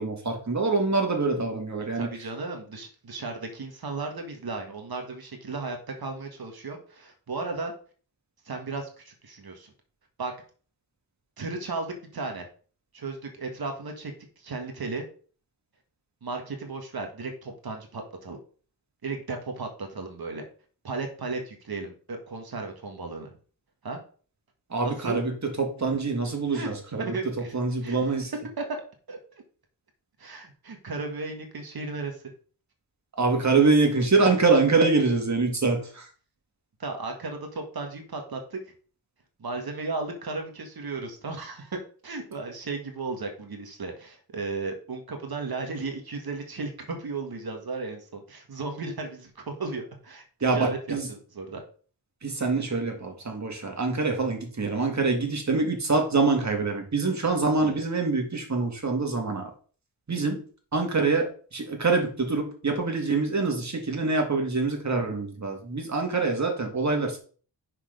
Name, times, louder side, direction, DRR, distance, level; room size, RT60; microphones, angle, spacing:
voice 1, 0.0-2.1 24.7-25.3 25.6-27.1 27.5-28.3 33.2-36.1 50.4-51.1 52.2-59.5 60.1-60.4 60.7-67.2, right 3 dB, 40° right, 2 dB, 2.2 m, -25 dB
voice 2, 1.8-7.7 8.4-9.7 10.2-10.3 11.4-12.5 12.9-15.0 16.2-18.4 19.0-20.4 20.8-23.3 23.8-24.0 24.8-25.2 26.5-26.7 27.0-27.5 27.8-28.1 28.6-28.8 29.1-29.2 30.2-32.3 36.8-38.6 39.4-51.6 57.6-57.8, right 3 dB, 55° right, 4 dB, 1.6 m, -35 dB
6.0 x 4.6 x 5.2 m, 0.41 s
cardioid pair, 75°, 43 cm